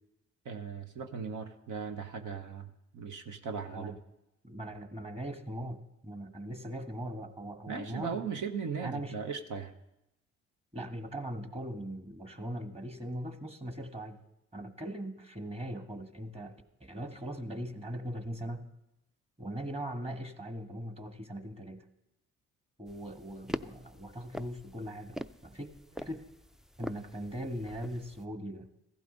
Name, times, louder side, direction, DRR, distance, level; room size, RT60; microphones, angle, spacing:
voice 1, 0.4-3.9 7.7-9.7, right 6 dB, 65° right, 6 dB, 1.0 m, -38 dB
voice 2, 4.4-8.3 8.8-9.2 10.7-14.2 14.5-16.5 16.8-18.7 19.4-21.9 22.8-25.7 26.0-26.2 26.8-28.7, equal, 20° right, 7 dB, 1.5 m, -40 dB
sound 1, 22.9-28.3, equal, ahead, 0.4 m, -44 dB
15.0 x 12.0 x 3.9 m, 0.90 s
supercardioid pair, 55°, 33 cm